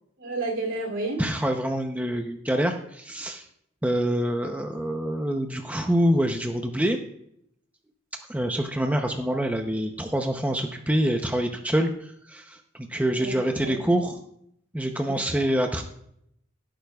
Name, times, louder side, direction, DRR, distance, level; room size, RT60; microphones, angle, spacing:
voice 1, 0.2-1.3 13.2-14.0 15.1-15.2, right 2 dB, 65° right, 1 dB, 2.9 m, -31 dB
voice 2, 1.2-3.4 3.8-7.0 8.3-14.1 14.7-15.8, equal, 5° right, 4 dB, 0.7 m, -26 dB
16.5 x 8.9 x 2.3 m, 0.71 s
head